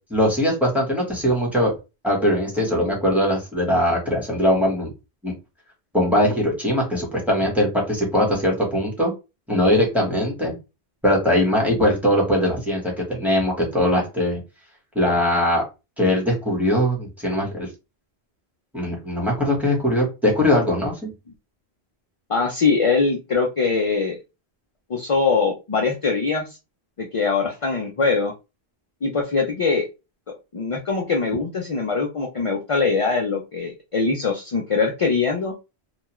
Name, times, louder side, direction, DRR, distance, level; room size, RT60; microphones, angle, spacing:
voice 1, 0.1-1.7 2.0-4.9 5.2-5.3 5.9-9.1 9.5-10.5 11.0-14.4 14.9-15.6 16.0-17.7 18.7-21.1, left 1 dB, ahead, -2 dB, 1.0 m, -21 dB
voice 2, 22.3-24.2 24.9-26.5 27.0-28.3 29.0-29.9 30.5-35.5, left 4 dB, 50° left, 2 dB, 0.4 m, -22 dB
2.3 x 2.3 x 2.9 m, 0.27 s
omnidirectional pair, 1.1 m